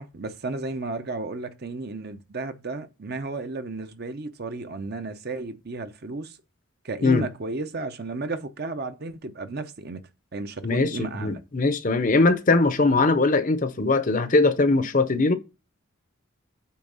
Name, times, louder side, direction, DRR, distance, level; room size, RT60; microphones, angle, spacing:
voice 1, 0.0-6.4 6.8-10.0 10.3-11.4, right 3 dB, 45° right, 0.7 m, -33 dB
voice 2, 10.6-15.4, left 3 dB, 35° left, 0.6 m, -21 dB
8.5 x 3.5 x 5.5 m
head